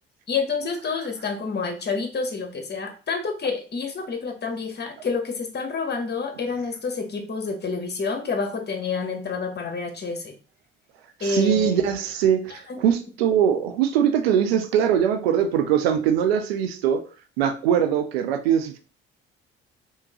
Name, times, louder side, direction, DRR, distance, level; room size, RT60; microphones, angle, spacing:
voice 1, 0.3-10.3 11.2-11.8 12.7-12.8, left 4 dB, 35° left, 5 dB, 1.0 m, -28 dB
voice 2, 11.2-17.0 17.4-18.8, right 9 dB, 85° right, 7 dB, 0.5 m, -22 dB
3.5 x 2.9 x 2.9 m, 0.37 s
hypercardioid pair, 55°, 30 cm